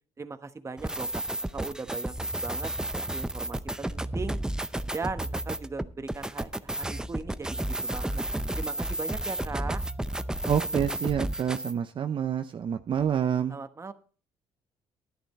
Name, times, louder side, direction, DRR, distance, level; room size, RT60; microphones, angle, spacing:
voice 1, 0.2-1.2 1.5-2.1 2.4-4.4 4.9-8.2 8.6-9.8 13.5-13.9, right 4 dB, 25° right, 9 dB, 1.1 m, -38 dB
sound 1, 0.8-11.7, right 1 dB, 5° right, 0.6 m, -32 dB
voice 2, 10.5-13.6, right 8 dB, 45° right, 7 dB, 0.7 m, -28 dB
11.5 x 10.5 x 4.2 m, 0.39 s
cardioid pair, 95°, 12 cm